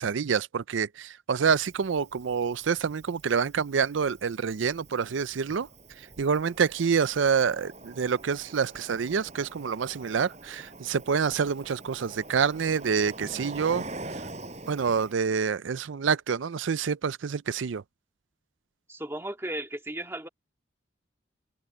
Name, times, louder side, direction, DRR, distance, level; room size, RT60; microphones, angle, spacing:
voice 1, 0.0-5.7 6.2-13.9 14.7-17.8, right 6 dB, 80° right, 0.5 m, -27 dB
Cricket, 1.4-15.1, right 2 dB, 35° right, 6.1 m, -45 dB
voice 2, 18.9-20.3, right 1 dB, 15° right, 2.0 m, -35 dB
head